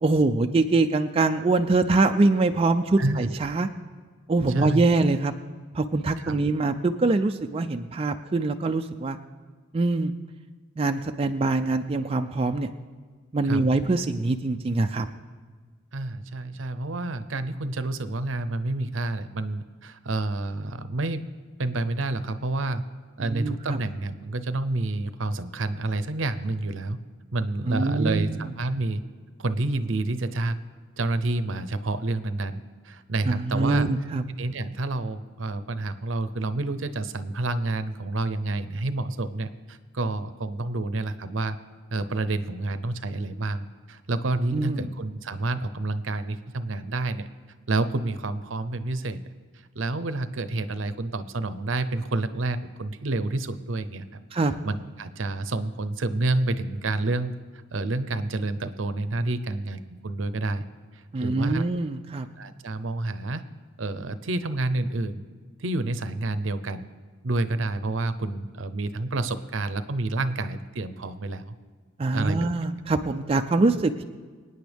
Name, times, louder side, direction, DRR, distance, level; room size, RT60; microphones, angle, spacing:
voice 1, 0.0-3.7 4.3-5.3 5.7-9.2 9.7-10.1 10.8-12.7 13.3-15.1 23.2-23.8 27.7-28.5 33.2-34.2 44.5-44.9 54.3-54.5 61.1-62.3 72.0-74.0, right 3 dB, 30° right, 5 dB, 0.4 m, -24 dB
voice 2, 15.9-21.2 21.6-22.8 23.2-27.0 27.3-29.0 29.4-30.6 31.0-33.9 34.4-41.6 41.9-47.3 47.7-49.2 49.8-54.0 54.6-57.3 57.7-60.6 61.2-61.6 62.4-63.4 63.8-65.2 65.6-66.9 67.2-71.4 72.1-72.7, right 2 dB, 70° right, 11 dB, 0.7 m, -29 dB
26.0 x 9.3 x 3.5 m, 1.6 s
head